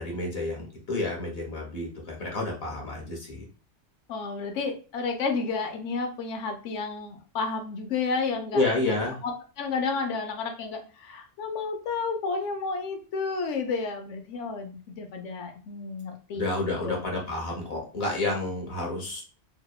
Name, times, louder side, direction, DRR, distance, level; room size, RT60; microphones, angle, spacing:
voice 1, 0.0-3.4 8.5-9.2 16.3-19.2, left 2 dB, 60° left, -1 dB, 0.9 m, -30 dB
voice 2, 4.1-17.0, left 4 dB, 85° left, 4 dB, 0.9 m, -31 dB
2.8 x 2.0 x 2.3 m, 0.36 s
omnidirectional pair, 1.2 m